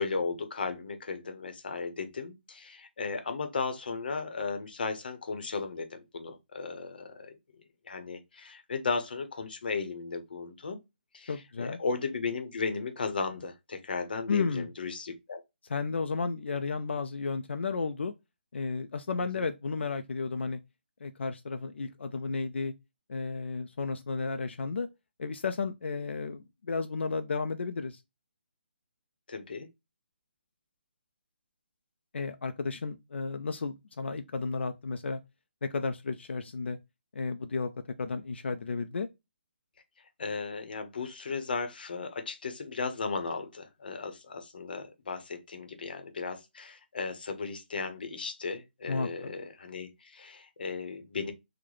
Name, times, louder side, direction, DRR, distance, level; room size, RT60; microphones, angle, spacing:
voice 1, 0.0-7.4 7.8-10.8 11.1-15.4 19.4-19.5 29.3-29.7 40.2-51.3, left 4 dB, 55° left, 0.8 m, -35 dB
voice 2, 11.3-11.8 14.3-14.7 15.7-18.1 18.5-20.6 21.0-22.7 23.1-24.9 25.2-28.0 32.1-35.2 35.6-36.8 37.1-37.7 38.0-39.1 48.9-49.3, left 4 dB, 85° left, 0.4 m, -33 dB
3.9 x 2.1 x 3.0 m
hypercardioid pair, 175°, 6 cm